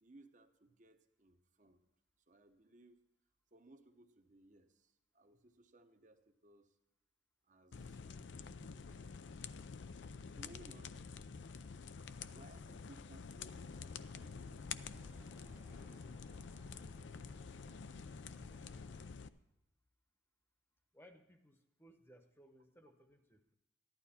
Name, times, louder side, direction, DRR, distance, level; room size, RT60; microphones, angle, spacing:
voice 1, 0.0-1.8 2.3-3.0 3.5-6.8 7.4-9.7 10.3-11.0 11.8-17.4 18.0-18.2, right 1 dB, 40° right, 7 dB, 0.9 m, -64 dB
sound 1, 7.7-19.3, left 5 dB, 70° left, 0.5 m, -49 dB
sound 2, 13.9-19.1, right 1 dB, 10° right, 0.4 m, -67 dB
voice 2, 20.9-23.5, equal, 10° left, 6 dB, 0.9 m, -63 dB
14.5 x 11.5 x 4.3 m, 0.87 s
head